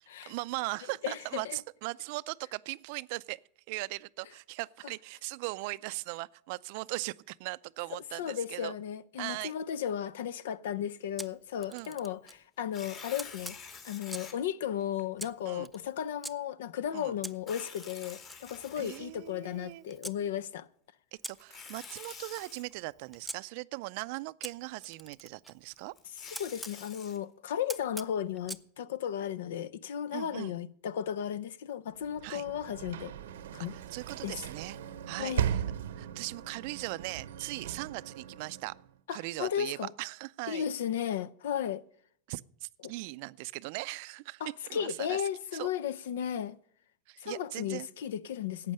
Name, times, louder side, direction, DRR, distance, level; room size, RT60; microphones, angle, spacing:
voice 1, 0.0-3.4 3.7-8.7 9.2-9.5 11.7-12.0 15.4-15.7 16.9-17.1 18.8-19.8 21.3-25.9 30.1-30.5 32.2-32.4 33.7-34.8 35.1-35.6 36.0-38.8 39.1-40.6 42.3-44.4 44.7-45.2 45.5-45.7 47.1-47.9, right 23 dB, 60° right, 0.4 m, -39 dB
voice 2, 1.0-1.6 7.9-13.6 13.8-20.7 26.4-33.1 33.5-33.7 34.2-34.4 35.2-35.5 39.1-39.9 40.5-41.8 42.8-42.9 44.4-46.6 47.2-48.7, left 9 dB, 80° left, 0.5 m, -35 dB
Camera, 11.2-12.4 13.2-14.4 15.2-16.3 17.2-20.2 21.2-23.4 24.4-26.8 27.7-28.7, right 1 dB, ahead, 0.5 m, -45 dB
Tearing, 12.6-14.3 15.0-15.1 17.3-19.5 21.3-22.6 25.8-27.2, left 5 dB, 40° left, 2.5 m, -48 dB
Sliding door / Slam, 32.0-39.0, right 9 dB, 85° right, 0.8 m, -38 dB
11.5 x 8.3 x 6.5 m
supercardioid pair, 120°, 0 cm